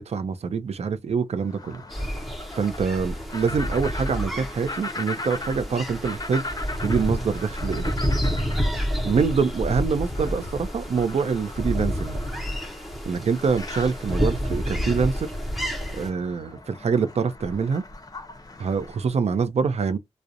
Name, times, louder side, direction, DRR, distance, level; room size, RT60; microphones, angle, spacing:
voice 1, 0.0-1.8 2.6-6.4 6.8-7.9 9.0-12.2 13.0-15.3 15.9-17.8 18.6-20.0, right 5 dB, 65° right, 0.4 m, -25 dB
sound 1, 1.4-19.1, left 2 dB, 35° left, 0.6 m, -39 dB
sound 2, 1.9-16.1, equal, ahead, 0.8 m, -29 dB
2.4 x 2.0 x 2.7 m
cardioid pair, 65°, 12 cm